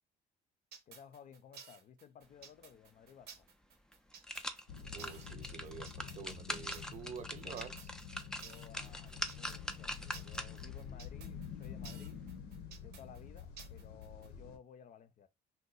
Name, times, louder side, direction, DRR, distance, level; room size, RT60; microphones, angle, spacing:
sound 1, 0.7-14.3, right 7 dB, 75° right, 0.8 m, -54 dB
voice 1, 0.9-3.5 8.4-12.2 12.8-15.3, left 8 dB, 50° left, 0.6 m, -56 dB
sound 2, 3.4-3.5 3.9-10.8 11.2-11.3, left 1 dB, 5° left, 0.4 m, -43 dB
sound 3, 4.7-14.6, left 7 dB, 85° left, 0.8 m, -48 dB
voice 2, 4.9-7.9, right 7 dB, 45° right, 0.6 m, -48 dB
2.8 x 2.2 x 3.9 m
cardioid pair, 110°, 17 cm